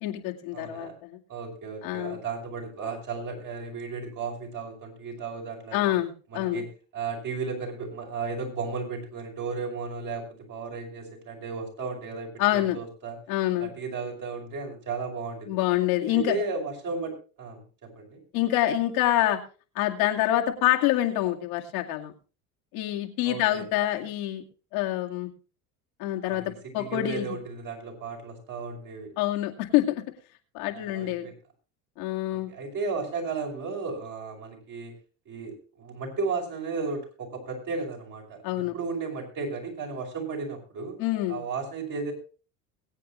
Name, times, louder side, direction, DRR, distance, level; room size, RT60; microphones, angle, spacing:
voice 1, 0.0-1.2 1.8-2.2 5.7-6.6 12.4-12.8 13.3-13.7 15.5-16.4 18.3-19.4 19.7-22.1 22.7-24.4 24.7-25.3 26.0-26.4 26.7-27.4 29.2-30.0 30.5-31.3 32.0-32.5 38.4-38.7 41.0-41.4, left 14 dB, 80° left, 2 dB, 2.3 m, -26 dB
voice 2, 0.5-0.9 1.3-5.9 6.3-6.7 6.9-13.2 13.6-15.5 16.1-18.2 23.2-23.6 26.3-29.1 30.6-31.3 32.3-35.0 35.3-41.0 41.3-42.1, right 4 dB, 50° right, 1 dB, 5.8 m, -34 dB
22.0 x 8.6 x 3.1 m, 0.36 s
supercardioid pair, 85°, 41 cm